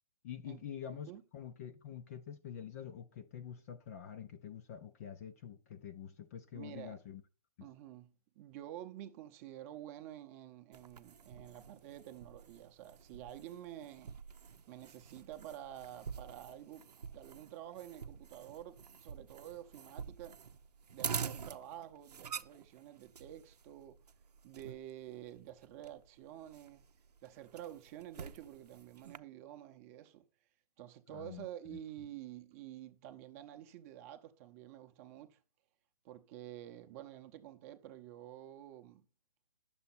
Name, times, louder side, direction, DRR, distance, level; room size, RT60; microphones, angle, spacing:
voice 1, 0.2-7.2 7.6-7.7 31.1-31.8, left 9 dB, 25° left, 0.5 m, -47 dB
voice 2, 6.5-7.0 7.6-14.1 14.7-16.9 17.1-20.4 20.9-24.0 24.4-26.8 27.2-30.3 30.8-35.4 36.0-39.0, right 12 dB, 20° right, 0.7 m, -49 dB
sound 1, 10.7-29.2, right 6 dB, 75° right, 0.7 m, -47 dB
10.5 x 7.1 x 4.2 m
hypercardioid pair, 150°, 20 cm